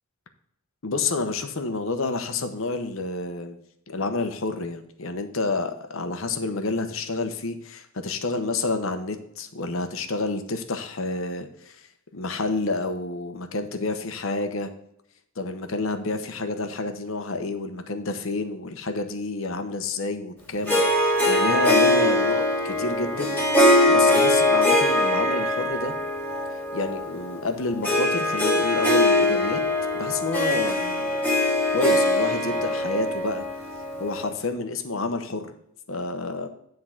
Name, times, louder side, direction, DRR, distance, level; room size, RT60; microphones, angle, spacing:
voice 1, 0.8-3.6 3.9-11.9 12.1-14.7 15.4-25.9 26.7-29.6 29.9-31.2 31.7-33.4 34.0-35.5 35.9-36.5, left 3 dB, 70° left, 8 dB, 1.0 m, -29 dB
Harp, 20.7-34.3, left 1 dB, 10° left, 1.7 m, -22 dB
9.8 x 3.9 x 5.8 m, 0.75 s
head